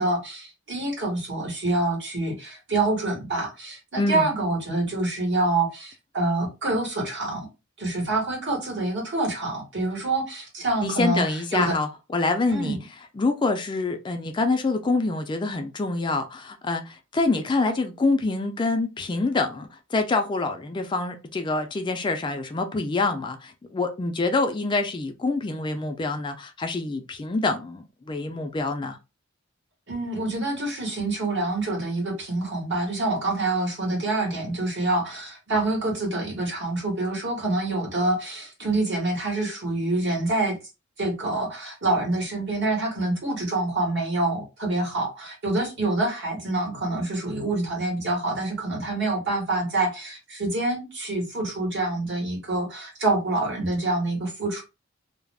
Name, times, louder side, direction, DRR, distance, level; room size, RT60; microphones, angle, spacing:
voice 1, 0.0-7.5 7.8-11.8 12.5-12.8 29.9-40.6 41.0-54.6, right 2 dB, 60° right, 1.2 m, -26 dB
voice 2, 4.0-4.3 10.8-12.8 13.2-29.0, left 3 dB, 25° left, 0.3 m, -26 dB
2.3 x 2.0 x 3.3 m
head